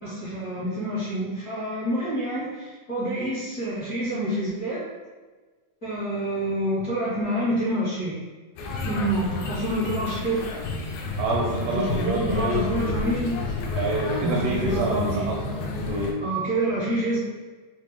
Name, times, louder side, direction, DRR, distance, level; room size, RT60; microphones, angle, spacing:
voice 1, 0.0-4.8 5.8-8.2 8.8-10.4 11.6-13.4 14.2-15.7 16.2-17.2, right 1 dB, 60° left, -13 dB, 0.8 m, -27 dB
sound 1, 8.6-16.1, left 3 dB, 80° left, 1.6 m, -31 dB
voice 2, 11.2-12.7 13.7-15.4 15.9-16.2, right 2 dB, 80° right, -2 dB, 1.4 m, -27 dB
5.1 x 2.0 x 3.0 m, 1.3 s
omnidirectional pair, 3.4 m